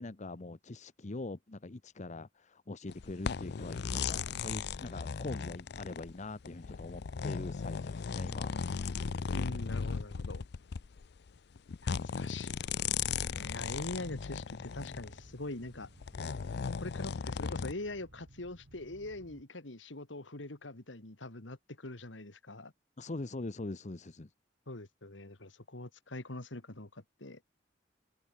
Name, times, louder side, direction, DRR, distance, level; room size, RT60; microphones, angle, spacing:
voice 1, 0.0-8.6 23.0-24.3, left 2 dB, 40° left, 0.9 m, -43 dB
sound 1, 2.9-15.2 15.8-17.7, left 6 dB, 60° left, 0.5 m, -37 dB
voice 2, 9.3-10.5 11.8-13.0 13.3-15.9 16.7-22.7 24.7-27.4, left 2 dB, 85° left, 2.4 m, -43 dB
sound 2, 12.7-19.4, right 1 dB, 70° right, 1.9 m, -58 dB
head